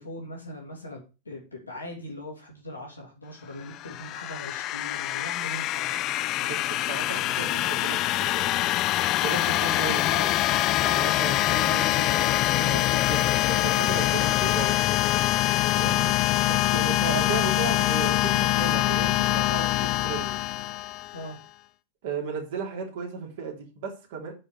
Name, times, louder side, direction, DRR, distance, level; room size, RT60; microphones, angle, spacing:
voice 1, 0.0-6.0 9.9-10.0 15.8-16.1 21.1-21.4, left 1 dB, 80° left, -1 dB, 3.3 m, -40 dB
sound 1, 3.7-21.3, left 16 dB, 35° left, 0.5 m, -24 dB
voice 2, 6.4-8.5 9.2-10.4 10.8-14.8 15.7-15.9 16.5-20.4 22.0-24.3, right 6 dB, 55° right, 1 dB, 3.3 m, -35 dB
9.9 x 5.2 x 6.8 m, 0.31 s
figure-of-eight pair, 90°, 0 cm